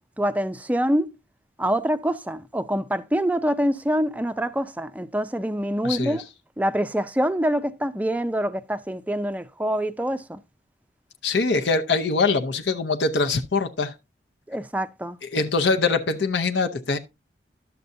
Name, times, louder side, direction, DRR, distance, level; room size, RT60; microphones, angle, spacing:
voice 1, 0.2-1.1 1.6-6.2 6.6-10.4 14.5-15.2, equal, 10° right, 0.4 m, -25 dB
voice 2, 5.8-6.2 11.2-13.9 15.3-17.0, left 4 dB, 75° left, 0.7 m, -23 dB
12.0 x 6.9 x 2.6 m
head